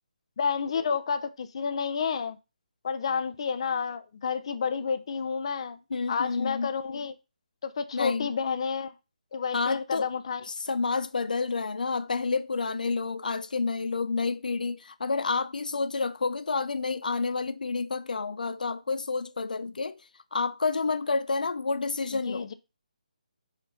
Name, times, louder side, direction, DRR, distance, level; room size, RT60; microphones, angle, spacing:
voice 1, 0.4-2.4 2.8-5.8 6.1-7.1 7.6-8.9 9.3-10.4 22.1-22.5, left 6 dB, 45° left, 0.7 m, -30 dB
voice 2, 5.9-6.7 7.9-8.3 9.5-10.1 10.4-20.0 20.3-22.5, left 4 dB, 85° left, 0.5 m, -29 dB
5.1 x 4.5 x 5.4 m
hypercardioid pair, 165°, 4 cm